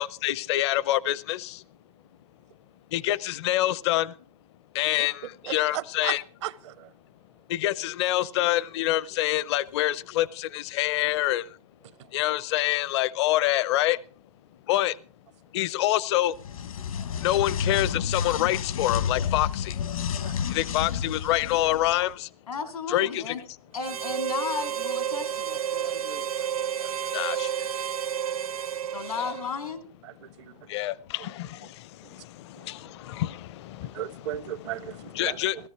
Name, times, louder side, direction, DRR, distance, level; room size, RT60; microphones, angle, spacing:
voice 1, 0.0-1.6 2.9-4.1 4.7-6.2 7.5-11.4 12.1-14.0 14.7-14.9 15.5-16.3 17.2-19.7 20.5-22.3 22.9-23.3 27.1-27.5 30.7-31.6 32.6-33.9 35.1-35.6, left 15 dB, 50° left, 0.6 m, -26 dB
voice 2, 5.5-6.1 6.4-6.9 20.3-20.4 25.8-26.5 26.8-26.9 33.9-35.0 35.3-35.4, right 13 dB, 55° right, 0.7 m, -35 dB
sound 1, 16.3-22.0, left 7 dB, 70° left, 1.2 m, -30 dB
voice 3, 22.5-23.4 23.7-26.3 28.9-29.8, left 6 dB, 90° left, 2.7 m, -34 dB
Harmonica, 23.8-29.7, right 9 dB, 80° right, 1.0 m, -31 dB
16.5 x 13.5 x 4.6 m
hypercardioid pair, 125°, 18 cm